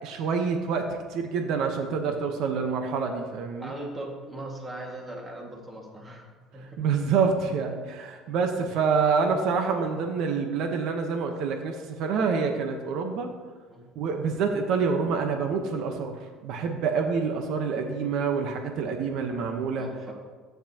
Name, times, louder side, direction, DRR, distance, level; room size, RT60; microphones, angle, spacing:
voice 1, 0.0-3.7 6.8-13.3 14.0-16.2 16.4-19.9, right 5 dB, 65° right, 4 dB, 1.0 m, -27 dB
voice 2, 3.6-6.8 13.7-13.9 19.8-20.1, right 1 dB, 20° right, 0 dB, 1.9 m, -39 dB
13.0 x 9.2 x 2.9 m, 1.5 s
cardioid pair, 135°, 0 cm